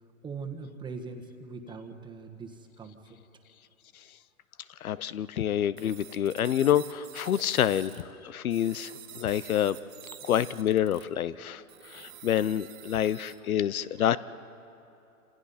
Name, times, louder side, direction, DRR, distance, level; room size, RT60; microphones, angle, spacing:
voice 1, 0.2-3.0 11.5-12.2, right 4 dB, 10° right, 5 dB, 1.4 m, -42 dB
voice 2, 4.8-9.8 10.2-14.2, left 10 dB, 75° left, 17 dB, 0.8 m, -27 dB
sound 1, 5.8-8.0 8.5-11.1 11.7-13.4, right 11 dB, 65° right, 2.2 m, -48 dB
28.0 x 27.0 x 4.2 m, 2.9 s
hypercardioid pair, 130°, 43 cm